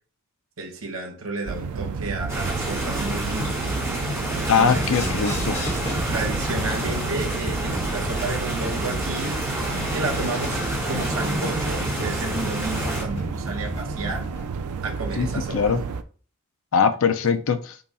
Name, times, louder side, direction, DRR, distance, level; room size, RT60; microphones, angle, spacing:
voice 1, 0.6-3.6 4.4-5.2 6.1-9.4 9.9-10.6 10.9-14.3 14.8-15.8 17.2-17.3, right 2 dB, 70° right, 1.1 m, -32 dB
sound 1, 1.5-16.0, right 5 dB, 85° right, 0.4 m, -32 dB
sound 2, 2.3-13.0, right 1 dB, 10° right, 1.1 m, -29 dB
voice 2, 4.5-5.6 15.2-15.3 15.5-15.8 16.7-17.7, left 6 dB, 65° left, 0.5 m, -21 dB
sound 3, 4.7-14.5, equal, 30° left, 1.3 m, -34 dB
5.4 x 2.3 x 4.1 m
head